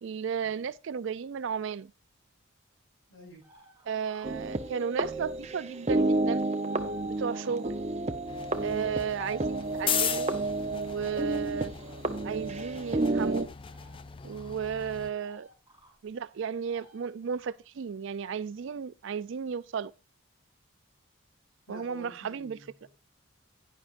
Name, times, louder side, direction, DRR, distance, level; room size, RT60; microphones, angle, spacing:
voice 1, 0.0-1.9 3.9-6.4 7.0-7.8 8.6-10.3 10.7-11.7 12.2-13.5 14.2-15.5 16.0-19.9 21.7-22.6, right 7 dB, 60° right, 0.4 m, -34 dB
voice 2, 3.1-3.4 7.2-7.5 21.7-22.9, equal, 75° left, 6.5 m, -49 dB
sound 1, 3.4-5.0 5.2-6.1 6.5-7.8 8.2-9.1 9.9-10.5 11.7-12.0 12.5-12.7 13.7-14.0 14.3-14.5 14.9-15.9 16.6-17.5, right 1 dB, 15° right, 5.9 m, -60 dB
sound 2, 4.2-13.5, right 2 dB, 30° right, 0.7 m, -31 dB
sound 3, 8.3-15.1, left 8 dB, 25° left, 0.4 m, -37 dB
11.0 x 10.0 x 2.5 m
head